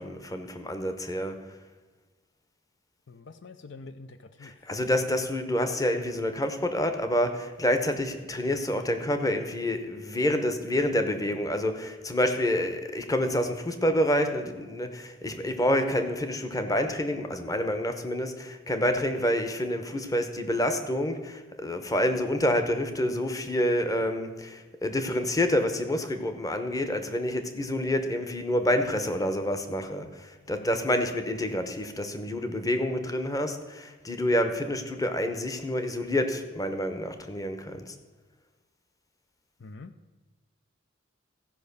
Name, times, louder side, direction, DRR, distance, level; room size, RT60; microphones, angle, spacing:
voice 1, 0.0-1.6 4.4-37.9, left 1 dB, 20° left, 7 dB, 0.9 m, -28 dB
voice 2, 3.1-4.7 39.6-39.9, left 3 dB, 65° left, 10 dB, 0.5 m, -46 dB
15.5 x 5.3 x 6.8 m, 1.3 s
head